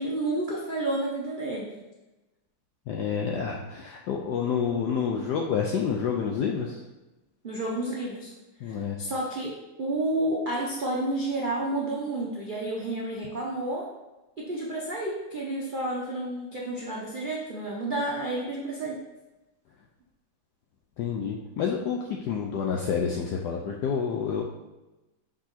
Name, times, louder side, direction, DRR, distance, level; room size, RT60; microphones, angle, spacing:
voice 1, 0.0-1.7 7.4-8.3 8.6-9.5 9.8-13.9 14.4-19.0, right 1 dB, 90° right, -5 dB, 0.4 m, -30 dB
voice 2, 2.9-6.8 8.6-9.0 21.0-24.4, left 6 dB, 85° left, 0 dB, 0.9 m, -28 dB
6.1 x 3.7 x 4.2 m, 1.1 s
omnidirectional pair, 2.4 m